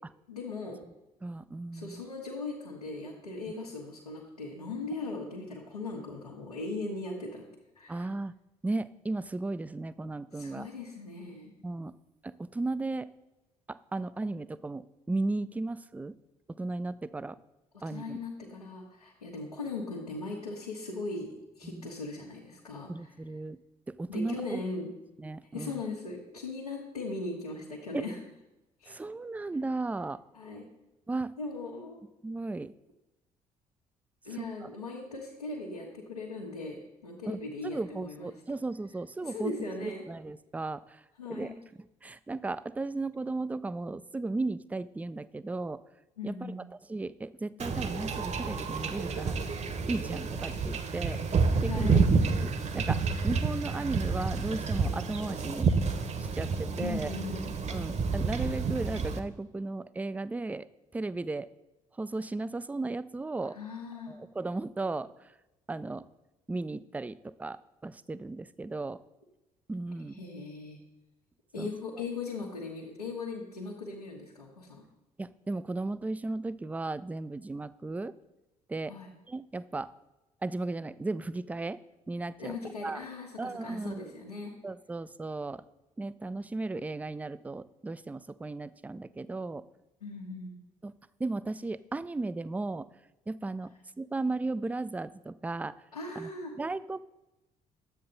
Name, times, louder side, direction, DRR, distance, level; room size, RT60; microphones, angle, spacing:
voice 1, 0.3-0.8 1.7-7.4 7.7-8.1 10.3-11.5 17.8-23.1 24.1-24.9 25.5-28.2 28.8-29.0 30.3-30.6 31.4-32.0 34.2-38.3 39.2-40.0 41.2-41.6 46.2-46.6 51.7-52.1 56.8-57.5 63.4-64.2 70.1-70.8 71.5-74.8 78.8-79.1 82.4-84.5 90.0-90.5 95.9-96.5, left 3 dB, 85° left, -4 dB, 1.3 m, -39 dB
voice 2, 1.2-2.0 7.9-8.3 8.6-10.7 11.6-11.9 12.2-13.1 13.7-16.1 16.6-17.4 17.8-18.2 21.6-21.9 22.9-23.6 23.9-24.6 25.2-25.8 27.9-28.1 28.9-30.2 31.1-31.3 32.2-32.7 34.4-34.7 37.3-39.5 39.8-41.0 41.3-41.5 42.0-45.8 46.2-46.5 46.9-49.4 49.9-52.0 52.4-55.7 56.2-57.1 57.7-61.5 62.0-63.6 64.1-65.1 65.7-66.1 66.5-69.0 69.7-70.2 71.6-71.7 75.2-78.1 78.7-78.9 79.3-79.9 80.4-81.8 82.1-82.6 82.8-83.1 83.4-84.1 84.6-85.6 86.0-89.7 90.8-90.9 91.2-92.9 93.3-93.7 94.0-95.8 96.2-96.3 96.6-97.1, right 2 dB, 10° right, 17 dB, 0.4 m, -35 dB
Wind / Ocean / Boat Water vehicle, 47.6-59.2, right 4 dB, 35° right, 1.1 m, -29 dB
12.0 x 8.5 x 3.9 m, 0.98 s
figure-of-eight pair, 50°, 19 cm